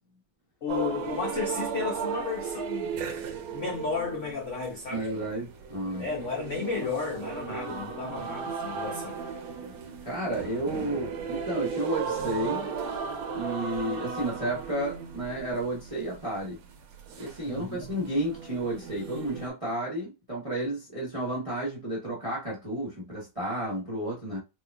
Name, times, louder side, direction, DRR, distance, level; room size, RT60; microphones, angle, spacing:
voice 1, 0.6-3.0 3.5-5.4 6.0-9.2 17.5-17.9, left 5 dB, 80° left, 0.6 m, -33 dB
sound 1, 0.7-19.5, right 6 dB, 75° right, 1.5 m, -36 dB
voice 2, 4.9-6.1 10.0-12.7 13.3-16.6 17.2-24.4, right 1 dB, 35° right, 0.5 m, -32 dB
4.6 x 2.4 x 2.2 m
omnidirectional pair, 2.4 m